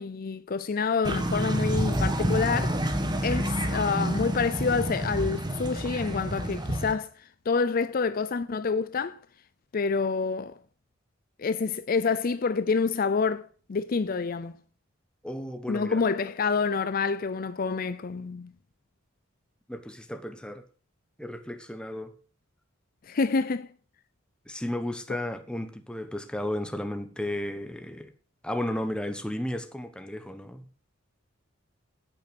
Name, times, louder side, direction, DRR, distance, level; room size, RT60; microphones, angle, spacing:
voice 1, 0.0-2.8 3.2-9.2 9.7-10.6 11.4-14.6 15.7-18.5 23.1-23.7, left 5 dB, 45° left, 0.5 m, -27 dB
sound 1, 1.0-6.9, right 1 dB, 20° right, 1.3 m, -28 dB
voice 2, 15.2-16.0 19.7-20.6 21.2-22.1 24.5-28.1 28.4-30.6, left 1 dB, 5° left, 1.1 m, -34 dB
10.0 x 9.0 x 6.0 m
head